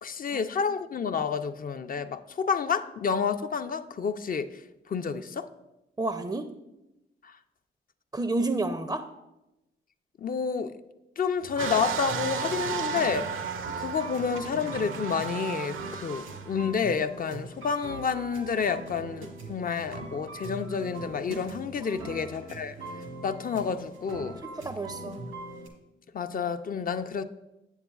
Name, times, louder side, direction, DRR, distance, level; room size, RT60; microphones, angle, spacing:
voice 1, 0.0-4.5 4.9-5.5 10.2-10.7 11.2-13.3 13.8-22.7 23.2-24.4 26.1-27.2, left 6 dB, 45° left, 10 dB, 0.4 m, -29 dB
voice 2, 6.0-6.5 8.1-9.0 21.8-22.3 24.4-25.2, right 2 dB, 15° right, 8 dB, 0.4 m, -31 dB
sound 1, 11.3-25.7, right 2 dB, 90° right, 1.1 m, -42 dB
sound 2, 11.6-16.6 17.2-17.3, right 7 dB, 70° right, 0.5 m, -34 dB
8.0 x 7.3 x 2.3 m, 0.95 s
cardioid pair, 60°, 21 cm